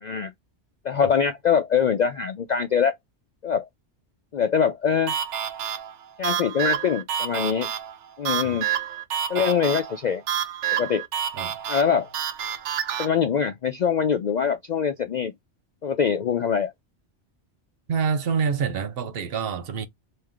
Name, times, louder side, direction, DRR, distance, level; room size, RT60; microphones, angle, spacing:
voice 1, 0.0-0.3 0.8-3.0 3.4-3.7 4.3-5.1 6.2-7.7 8.2-8.7 9.3-10.2 10.7-11.0 11.7-12.1 13.0-15.3 15.8-16.7, left 7 dB, 60° left, 0.4 m, -23 dB
sound 1, 5.1-13.1, right 9 dB, 80° right, 1.0 m, -29 dB
voice 2, 17.9-19.9, right 6 dB, 60° right, 0.8 m, -26 dB
3.2 x 2.9 x 3.5 m
omnidirectional pair, 1.2 m